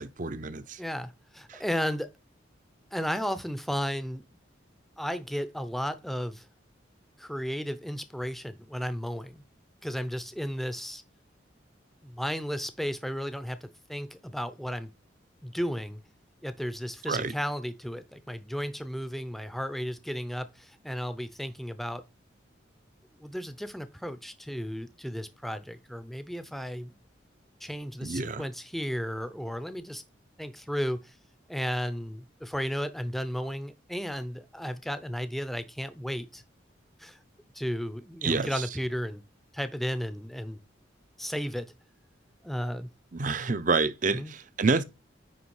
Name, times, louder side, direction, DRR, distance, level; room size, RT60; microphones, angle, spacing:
voice 1, 0.0-0.8 1.5-1.6 17.1-17.3 28.0-28.5 38.2-38.7 43.1-44.8, right 4 dB, 40° right, 0.6 m, -28 dB
voice 2, 0.8-2.1 2.9-4.2 5.0-6.5 7.2-9.4 9.8-11.0 12.0-14.9 15.4-16.0 16.4-22.0 23.2-27.0 27.6-30.0 30.4-31.1 31.5-36.4 37.0-37.2 37.5-39.2 39.5-40.6 41.2-41.7 42.4-42.9 44.1-44.3, equal, ahead, 0.6 m, -34 dB
9.6 x 3.3 x 4.8 m
head